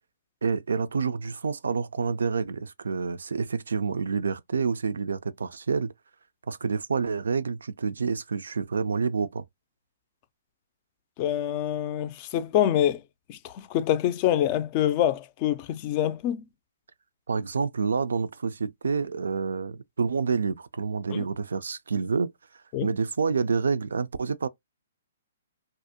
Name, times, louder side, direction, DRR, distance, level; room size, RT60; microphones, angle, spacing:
voice 1, 0.4-5.9 6.5-9.4 17.3-22.3 22.8-24.5, right 5 dB, 85° right, 0.3 m, -28 dB
voice 2, 11.2-13.0 13.3-16.4 21.1-21.2 22.7-22.9, left 11 dB, 35° left, 0.4 m, -26 dB
2.5 x 2.0 x 2.7 m
hypercardioid pair, 140°, 0 cm